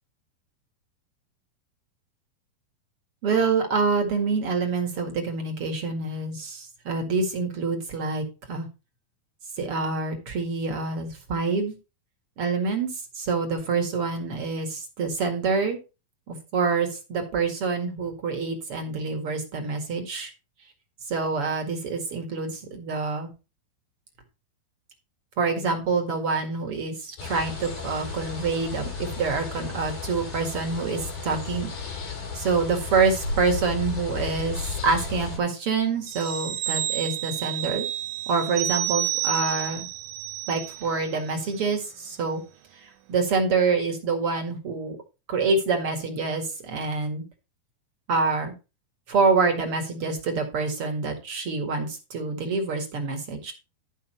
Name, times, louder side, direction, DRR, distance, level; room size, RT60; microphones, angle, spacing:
voice 1, 3.2-8.7 9.6-11.7 12.4-12.9 13.2-15.8 16.3-20.3 21.1-23.3 25.4-37.9 38.3-39.9 40.5-42.4 42.8-45.0 45.3-47.2 48.1-48.5 49.1-53.5, right 4 dB, 45° right, 3 dB, 2.4 m, -26 dB
sound 1, 27.2-35.4, left 4 dB, 80° left, 9.4 m, -34 dB
sound 2, 36.1-41.2 41.5-41.7, right 14 dB, 75° right, 2.0 m, -30 dB
13.0 x 5.6 x 4.4 m, 0.30 s
omnidirectional pair, 4.3 m